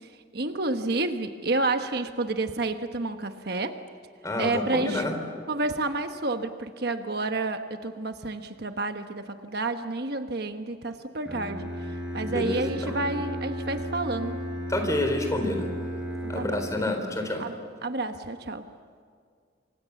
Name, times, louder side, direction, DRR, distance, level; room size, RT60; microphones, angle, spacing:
voice 1, 0.3-3.8 4.4-5.0 5.5-11.7 12.1-14.4 16.2-16.6 17.4-17.5 17.8-18.6, right 2 dB, 55° right, 7 dB, 1.2 m, -30 dB
voice 2, 4.2-5.2 12.2-12.9 14.7-15.7 16.3-17.5, left 1 dB, 15° left, 5 dB, 3.8 m, -28 dB
Bowed string instrument, 11.2-17.1, equal, 5° right, 4.9 m, -34 dB
28.5 x 25.0 x 7.2 m, 2.1 s
head